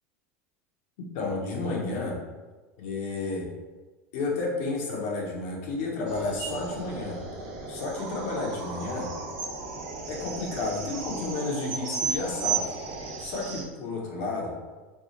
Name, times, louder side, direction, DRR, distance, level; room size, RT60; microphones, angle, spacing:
voice 1, 1.1-2.2 2.8-3.5 4.1-7.2 7.7-9.1 10.1-12.6 13.2-14.5, left 3 dB, 70° left, -2 dB, 1.1 m, -31 dB
sound 1, 6.1-13.6, right 5 dB, 65° right, 0.9 m, -34 dB
3.5 x 2.4 x 4.3 m, 1.3 s
supercardioid pair, 100°, 7 cm